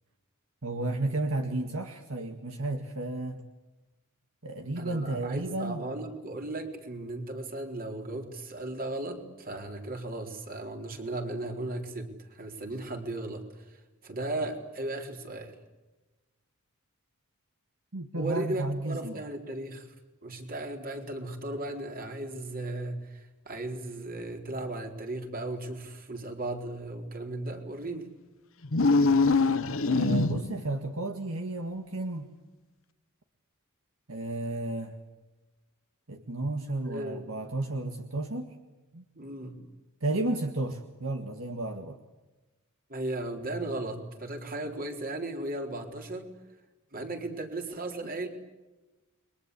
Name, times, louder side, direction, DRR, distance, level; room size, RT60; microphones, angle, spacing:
voice 1, 0.6-3.4 4.4-5.9 17.9-19.2 29.9-32.3 34.1-35.0 36.1-38.5 38.9-39.0 40.0-42.0, right 2 dB, 70° right, 6 dB, 1.8 m, -32 dB
voice 2, 4.8-13.4 13.7-15.5 18.1-19.9 20.2-28.1 36.8-37.2 39.1-39.5 42.9-46.3 46.9-48.3, right 2 dB, 45° right, 4 dB, 4.1 m, -36 dB
sound 1, 28.6-30.7, left 3 dB, 65° left, 1.2 m, -23 dB
30.0 x 23.0 x 8.3 m, 1.1 s
head